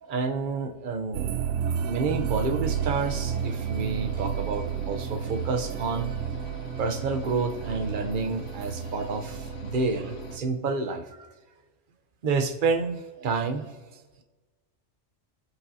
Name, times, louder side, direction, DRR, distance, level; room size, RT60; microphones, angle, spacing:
voice 1, 0.0-1.4 1.9-6.2 6.8-11.3 12.2-14.0, right 4 dB, 45° right, 7 dB, 0.9 m, -29 dB
sound 1, 1.1-10.4, right 8 dB, 80° right, 0.9 m, -32 dB
sound 2, 2.7-10.4, left 3 dB, 85° left, 1.3 m, -44 dB
21.5 x 8.0 x 2.8 m, 1.3 s
omnidirectional pair, 1.2 m